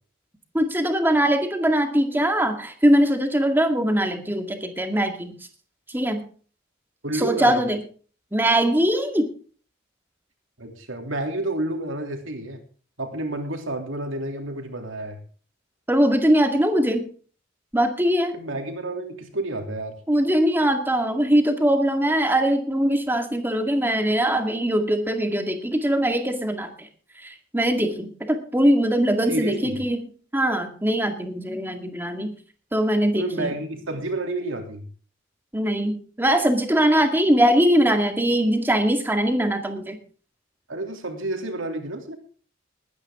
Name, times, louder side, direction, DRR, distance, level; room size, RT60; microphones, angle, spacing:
voice 1, 0.5-5.3 5.9-6.2 7.1-7.8 8.3-9.3 15.9-17.0 17.7-18.3 20.1-26.9 27.2-32.3 32.7-33.5 35.5-40.0, equal, 10° right, 5 dB, 2.1 m, -21 dB
voice 2, 7.0-7.6 10.6-12.6 13.0-15.2 18.3-19.9 29.3-29.8 33.1-34.9 40.7-42.2, right 2 dB, 75° right, 4 dB, 3.1 m, -30 dB
20.5 x 9.8 x 3.7 m, 0.41 s
head